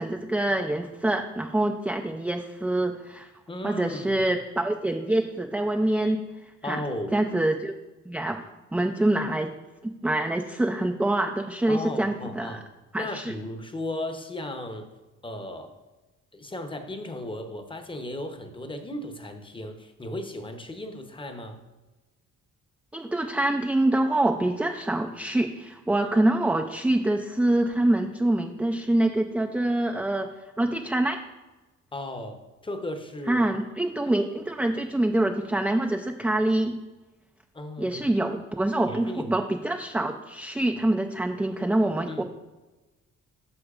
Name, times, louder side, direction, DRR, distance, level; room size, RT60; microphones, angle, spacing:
voice 1, 0.0-3.3 3.6-6.2 6.6-6.8 7.1-7.7 8.1-8.4 8.7-9.5 9.8-12.6 12.9-13.3 22.9-30.3 30.6-31.2 33.3-36.8 37.8-42.2, right 1 dB, 5° right, 4 dB, 0.3 m, -25 dB
voice 2, 3.5-4.2 6.6-7.2 11.7-12.6 13.0-14.9 15.2-15.7 16.3-21.6 31.9-33.4 37.5-38.0 38.9-39.4 42.1-42.2, left 1 dB, 15° left, 6 dB, 0.8 m, -35 dB
9.7 x 6.1 x 2.4 m, 1.1 s
cardioid pair, 90°, 30 cm